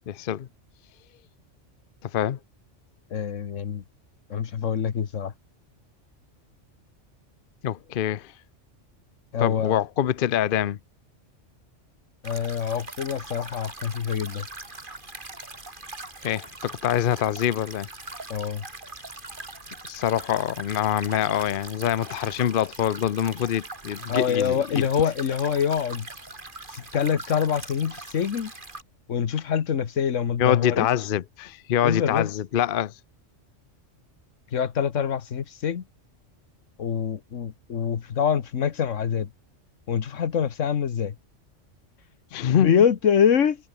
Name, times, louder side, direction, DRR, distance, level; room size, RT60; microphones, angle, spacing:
voice 1, 0.1-0.5 2.0-2.4 7.6-8.3 9.4-10.8 16.2-17.9 19.8-24.9 30.4-32.9 42.3-42.7, left 10 dB, 55° left, 0.8 m, -25 dB
voice 2, 3.1-3.8 4.3-5.3 9.3-9.8 12.2-14.5 18.3-18.6 24.1-26.1 26.7-28.5 29.1-30.9 31.8-32.3 34.5-35.8 36.8-39.3 39.9-41.1 42.5-43.6, left 7 dB, 85° left, 1.5 m, -25 dB
sound 1, 12.2-28.8, right 2 dB, 40° right, 3.2 m, -41 dB
omnidirectional pair, 1.3 m